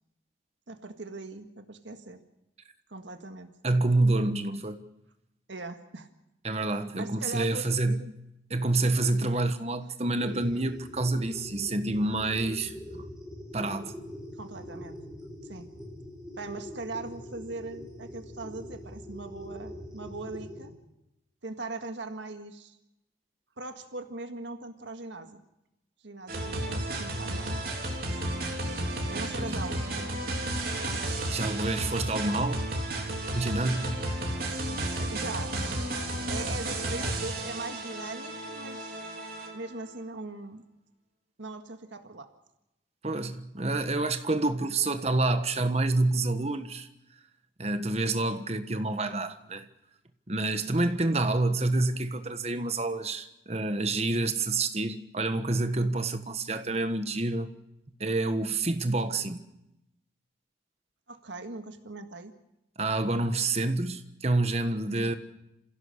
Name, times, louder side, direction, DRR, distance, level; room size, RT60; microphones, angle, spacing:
voice 1, 0.7-2.2 2.9-3.5 5.5-6.1 6.9-8.1 14.4-15.0 15.4-15.7 16.4-20.7 21.4-22.8 23.6-25.4 26.0-27.9 28.2-28.3 29.1-30.4 34.9-35.9 36.3-39.1 39.5-40.6 41.4-42.3 61.1-62.3 65.0-65.1, right 3 dB, 75° right, 1.7 m, -40 dB
voice 2, 3.6-4.8 6.4-8.0 8.5-13.1 13.5-14.0 29.4-29.5 31.3-32.6 33.3-34.0 43.0-46.9 47.6-49.7 50.3-57.5 58.0-59.4 62.8-65.1, right 2 dB, 35° right, 1.4 m, -28 dB
sound 1, 10.2-20.7, left 1 dB, 5° right, 5.9 m, -43 dB
sound 2, 26.3-39.8, right 1 dB, 50° right, 3.7 m, -32 dB
28.0 x 16.0 x 6.6 m
head